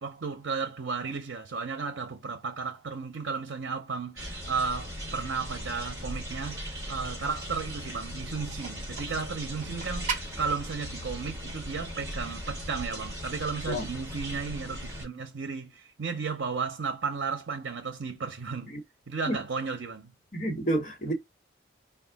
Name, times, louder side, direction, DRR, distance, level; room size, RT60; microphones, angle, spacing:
voice 1, 0.0-18.7 19.1-20.1, right 5 dB, 75° right, 0.6 m, -34 dB
sound 1, 4.2-15.0, equal, 15° right, 1.6 m, -38 dB
sound 2, 8.2-13.2, right 5 dB, 40° right, 0.8 m, -41 dB
voice 2, 20.3-21.1, right 1 dB, 45° left, 1.3 m, -29 dB
4.7 x 2.3 x 3.4 m
head